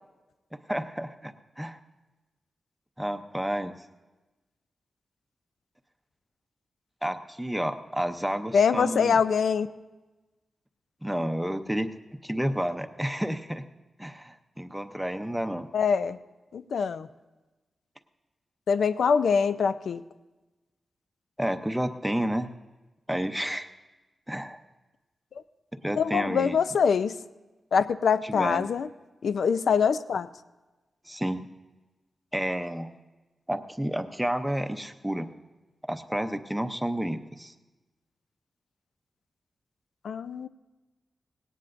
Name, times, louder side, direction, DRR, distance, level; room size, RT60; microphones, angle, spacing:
voice 1, 0.7-1.8 3.0-3.8 7.0-9.2 11.0-11.9 12.2-13.6 14.0-15.7 21.4-22.5 23.1-23.7 24.3-24.6 25.8-26.6 28.2-28.7 31.1-31.5 32.3-32.9 33.5-35.3 35.9-37.5, equal, 5° right, 8 dB, 0.6 m, -30 dB
voice 2, 8.5-9.7 15.7-16.2 16.5-17.1 18.7-20.0 26.0-27.2 27.7-28.9 29.2-30.3 40.0-40.5, left 6 dB, 85° left, 12 dB, 0.4 m, -24 dB
18.5 x 17.5 x 2.5 m, 1.2 s
wide cardioid pair, 145°, 0 cm